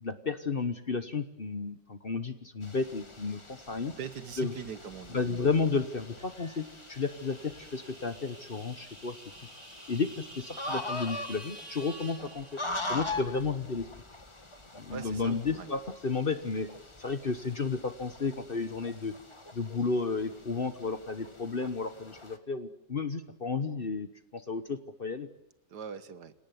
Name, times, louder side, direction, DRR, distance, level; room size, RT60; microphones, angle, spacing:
voice 1, 0.0-3.9 4.4-4.5 5.1-9.2 9.9-12.6 12.9-13.9 14.8-16.7 17.0-19.1 19.5-25.3, left 4 dB, 35° left, 11 dB, 1.1 m, -32 dB
sound 1, 2.6-22.4, left 2 dB, 15° left, 1.6 m, -43 dB
voice 2, 3.8-5.2 14.9-15.7 25.7-26.3, right 7 dB, 70° right, 13 dB, 1.8 m, -42 dB
sound 2, 5.1-13.1, right 1 dB, 40° right, 5.2 m, -50 dB
27.0 x 18.5 x 9.4 m, 0.80 s
omnidirectional pair, 1.9 m